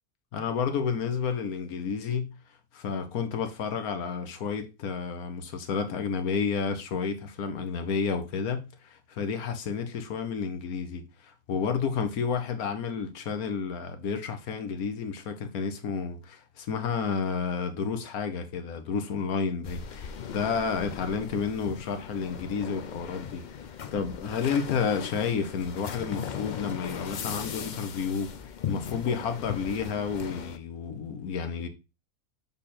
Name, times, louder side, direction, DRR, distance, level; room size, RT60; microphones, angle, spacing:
voice 1, 0.3-2.3 2.7-28.3 28.7-31.7, left 6 dB, 90° left, 1.4 m, -31 dB
sound 1, 19.6-30.6, left 8 dB, 65° left, 0.4 m, -38 dB
6.9 x 3.6 x 4.2 m
omnidirectional pair, 1.5 m